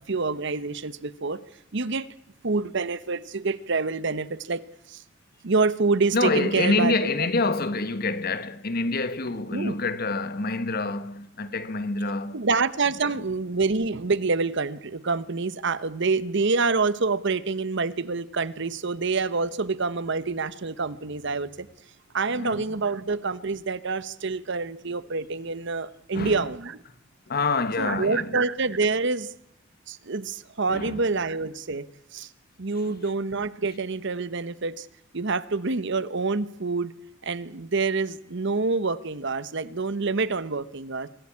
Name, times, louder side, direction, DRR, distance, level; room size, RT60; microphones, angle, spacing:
voice 1, 0.1-1.4 1.7-2.1 2.4-5.0 5.4-6.9 9.5-9.7 12.3-21.7 22.1-26.8 27.8-29.3 29.9-31.9 32.1-32.3 32.6-34.9 35.1-36.9 37.2-41.1, right 4 dB, 65° right, 1.0 m, -27 dB
voice 2, 6.1-12.4 12.8-13.2 22.3-22.7 26.1-26.5 27.3-28.4 30.7-31.0 32.7-33.0, left 3 dB, 50° left, 1.4 m, -27 dB
24.0 x 16.5 x 8.7 m
head